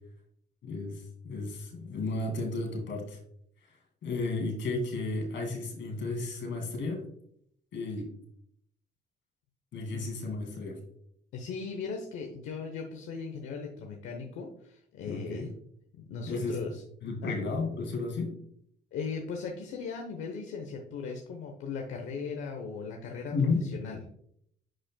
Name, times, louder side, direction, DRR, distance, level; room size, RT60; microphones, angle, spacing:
voice 1, 0.6-3.2 4.0-7.0 7.7-8.1 9.7-10.8 15.0-15.5 16.2-16.6 17.0-18.4 23.3-23.7, left 3 dB, 70° left, 2 dB, 2.4 m, -33 dB
voice 2, 11.3-15.5 16.1-16.8 17.2-17.3 18.9-24.0, left 5 dB, 90° left, 2 dB, 0.9 m, -38 dB
10.5 x 5.1 x 2.2 m, 0.69 s
cardioid pair, 90°, 20 cm